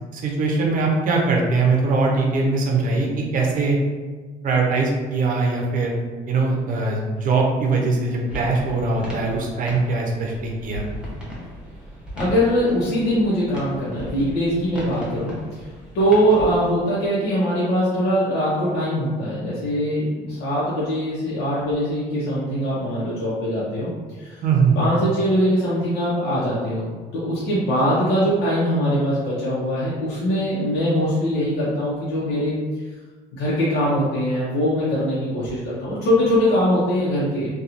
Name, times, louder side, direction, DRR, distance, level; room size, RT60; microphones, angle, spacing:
voice 1, 0.1-3.8 4.4-5.9 6.3-10.8 24.4-24.8, right 3 dB, 55° right, 0 dB, 0.6 m, -21 dB
sound 1, 8.3-16.6, equal, 5° right, 0.8 m, -36 dB
voice 2, 12.2-15.6 15.9-23.9 24.2-24.4 24.8-32.6 33.3-37.5, equal, 80° left, -8 dB, 0.7 m, -22 dB
2.8 x 2.2 x 2.5 m, 1.4 s
cardioid pair, 110°, 17 cm